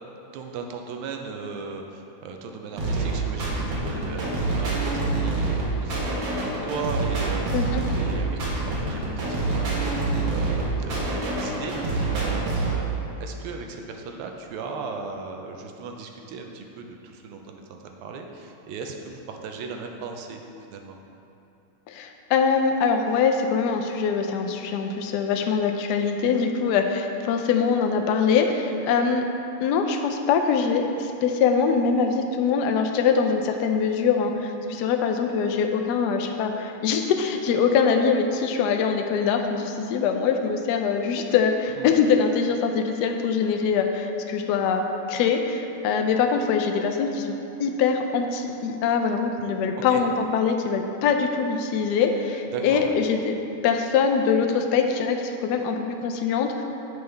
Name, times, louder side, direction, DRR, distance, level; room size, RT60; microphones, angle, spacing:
voice 1, 0.3-7.5 8.0-12.9 13.2-20.4 20.7-21.0 41.8-41.9 49.9-50.0 52.5-52.9, right 4 dB, 90° right, 3 dB, 1.6 m, -37 dB
sound 1, 2.8-12.8, right 3 dB, 65° right, 1.9 m, -26 dB
voice 2, 21.9-29.3 29.6-44.8 45.1-53.3 53.6-56.6, left 6 dB, 90° left, 4 dB, 0.9 m, -23 dB
7.9 x 5.4 x 3.3 m, 2.9 s
omnidirectional pair, 2.3 m